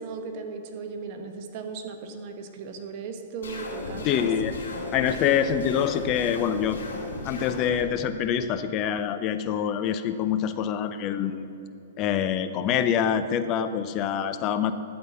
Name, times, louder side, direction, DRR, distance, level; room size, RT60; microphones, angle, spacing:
voice 1, 0.0-4.3, right 5 dB, 50° right, 6 dB, 1.0 m, -37 dB
sound 1, 3.4-7.8, left 2 dB, 80° left, 2.4 m, -35 dB
voice 2, 4.0-4.5 4.9-6.8 7.2-11.5 12.0-14.7, left 9 dB, 35° left, 11 dB, 0.5 m, -25 dB
12.5 x 4.3 x 7.1 m, 2.7 s
hypercardioid pair, 120°, 0 cm